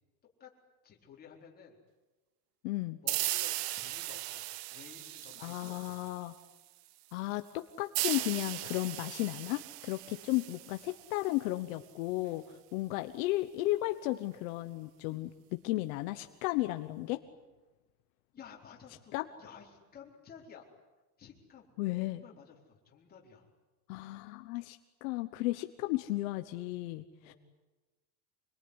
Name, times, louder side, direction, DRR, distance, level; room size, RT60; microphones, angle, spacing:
voice 1, 0.8-1.8 3.0-6.1 18.3-20.7 21.2-23.5 27.2-27.3, left 7 dB, 20° left, -1 dB, 4.3 m, -54 dB
voice 2, 2.6-3.0 5.4-6.3 7.1-17.2 19.1-19.2 21.8-22.2 23.9-27.3, left 18 dB, 65° left, 8 dB, 1.3 m, -34 dB
sound 1, 3.1-6.5 7.9-11.4, right 17 dB, 90° right, 1.1 m, -37 dB
26.0 x 22.5 x 9.9 m, 1.1 s
cardioid pair, 175°, 46 cm